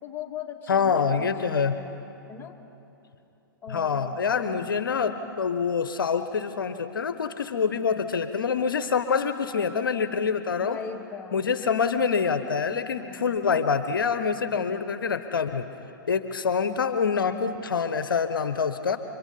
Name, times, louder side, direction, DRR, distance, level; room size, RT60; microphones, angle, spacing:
voice 1, 0.0-1.9 2.3-2.5 3.6-4.7 10.6-11.5 13.0-13.4, left 6 dB, 20° left, 1 dB, 2.5 m, -39 dB
voice 2, 0.7-1.8 3.7-10.8 11.3-15.7 16.1-19.0, left 6 dB, 70° left, 10 dB, 1.0 m, -26 dB
29.5 x 25.0 x 5.5 m, 3.0 s
figure-of-eight pair, 110°, 12 cm